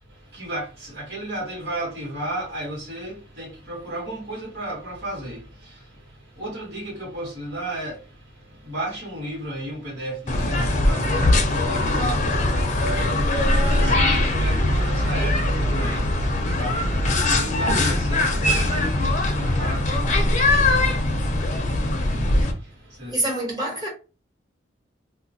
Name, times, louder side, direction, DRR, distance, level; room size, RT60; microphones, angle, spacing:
voice 1, 0.0-23.2, right 1 dB, 65° right, 1.2 m, -34 dB
sound 1, 10.3-22.5, left 1 dB, 40° left, 0.5 m, -21 dB
voice 2, 23.1-23.9, right 1 dB, 20° right, 1.1 m, -26 dB
2.3 x 2.2 x 3.9 m
head